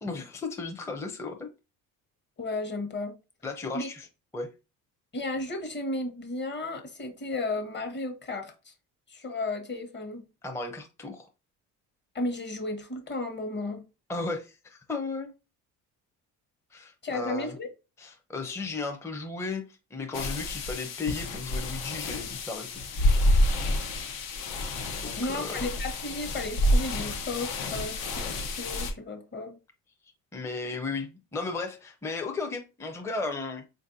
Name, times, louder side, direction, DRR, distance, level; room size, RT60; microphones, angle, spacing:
voice 1, 0.0-1.5 3.4-4.1 4.3-4.5 10.4-11.3 14.1-15.3 16.7-17.5 18.0-22.8 25.0-25.6 30.3-33.6, left 3 dB, 10° left, 0.6 m, -35 dB
voice 2, 2.4-3.1 3.7-3.9 5.1-8.7 9.1-10.2 12.1-13.8 17.0-17.7 25.1-29.6, left 2 dB, 30° left, 1.0 m, -34 dB
sound 1, 20.1-28.9, left 1 dB, 75° left, 0.8 m, -28 dB
4.1 x 2.6 x 2.6 m
supercardioid pair, 75°, 36 cm